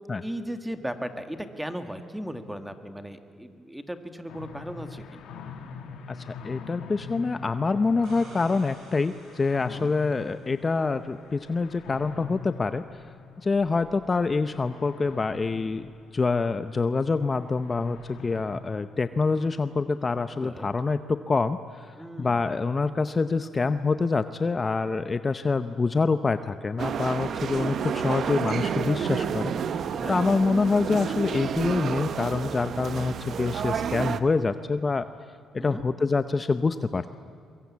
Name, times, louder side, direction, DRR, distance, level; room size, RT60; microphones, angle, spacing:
voice 1, 0.2-5.2 9.7-10.0 20.4-20.7 22.0-22.4 29.9-30.2 35.6-35.8, equal, 5° right, 8 dB, 1.9 m, -36 dB
sound 1, 4.3-18.6, left 5 dB, 85° left, 2.5 m, -44 dB
voice 2, 6.1-12.8 13.4-29.5 30.1-35.1 35.5-37.1, left 4 dB, 30° left, 11 dB, 0.7 m, -26 dB
sound 2, 7.8-10.7 13.5-13.6, right 2 dB, 85° right, 7.4 m, -50 dB
sound 3, 26.8-34.2, right 7 dB, 60° right, 1.0 m, -30 dB
23.0 x 22.5 x 8.5 m, 2.4 s
cardioid pair, 90°, 0 cm